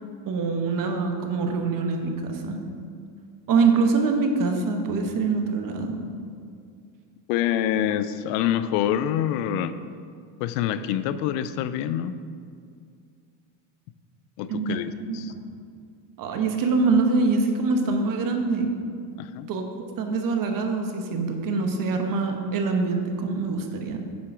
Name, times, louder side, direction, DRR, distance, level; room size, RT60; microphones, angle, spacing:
voice 1, 0.3-2.6 3.5-6.0 14.5-14.8 15.1-15.4 16.2-18.7 19.5-24.0, right 4 dB, 40° right, 4 dB, 1.0 m, -24 dB
voice 2, 7.3-9.7 10.4-12.2 14.4-15.3 19.2-19.5, left 10 dB, 75° left, 13 dB, 0.6 m, -26 dB
9.6 x 3.7 x 5.9 m, 2.2 s
supercardioid pair, 125°, 50 cm